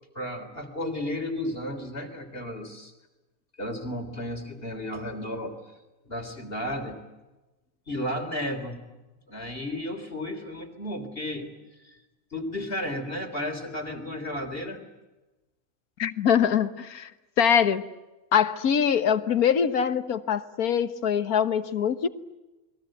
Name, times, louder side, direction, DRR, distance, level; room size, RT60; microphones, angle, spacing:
voice 1, 0.2-2.9 3.6-5.5 6.1-7.0 7.9-8.8 9.3-11.5 11.8-12.0 12.3-14.8, left 1 dB, 40° left, 3.8 m, -33 dB
voice 2, 16.0-17.1 17.4-17.8 18.3-22.1, left 8 dB, 90° left, 1.7 m, -23 dB
29.5 x 22.0 x 9.1 m
omnidirectional pair, 1.5 m